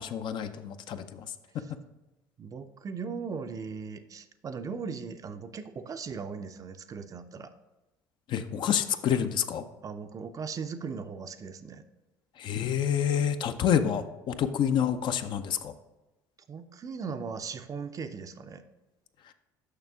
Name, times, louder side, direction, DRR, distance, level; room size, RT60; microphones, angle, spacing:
voice 1, 0.0-1.6 8.3-9.6 12.4-15.7 19.3-19.4, left 8 dB, 50° left, 9 dB, 0.5 m, -28 dB
voice 2, 2.4-7.5 9.8-11.8 16.5-18.6, right 5 dB, 35° right, 10 dB, 0.5 m, -38 dB
6.6 x 5.8 x 3.5 m, 1.0 s
hypercardioid pair, 70°, 10 cm